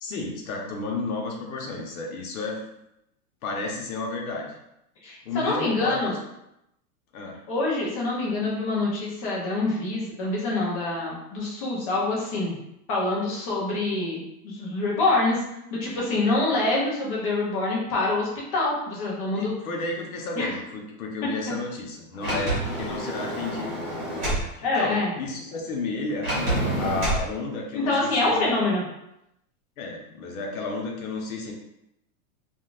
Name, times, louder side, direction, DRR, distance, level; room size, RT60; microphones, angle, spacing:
voice 1, 0.0-2.6 3.4-4.5 5.2-6.2 7.1-7.4 19.4-26.3 26.8-28.5 29.8-31.5, left 3 dB, 75° left, 0 dB, 0.9 m, -32 dB
voice 2, 5.0-6.2 7.5-12.6 12.9-15.4 15.7-19.5 20.3-20.5 24.6-25.1 27.7-28.8, left 2 dB, 25° left, -4 dB, 0.5 m, -26 dB
Sliding door, 22.2-24.5 26.2-27.3, right 1 dB, 25° right, 1.0 m, -27 dB
3.6 x 2.4 x 2.4 m, 0.83 s
supercardioid pair, 175°, 43 cm